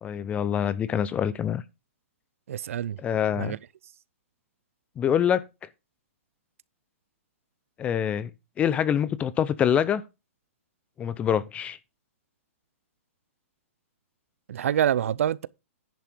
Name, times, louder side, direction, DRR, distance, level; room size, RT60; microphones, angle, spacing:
voice 1, 0.0-1.6 3.0-3.6 5.0-5.4 7.8-8.3 8.6-10.0 11.0-11.8, left 9 dB, 15° left, 0.5 m, -25 dB
voice 2, 2.5-3.0 3.4-3.6 14.5-15.5, right 10 dB, 70° right, 0.5 m, -26 dB
10.5 x 5.8 x 4.5 m
hypercardioid pair, 145°, 8 cm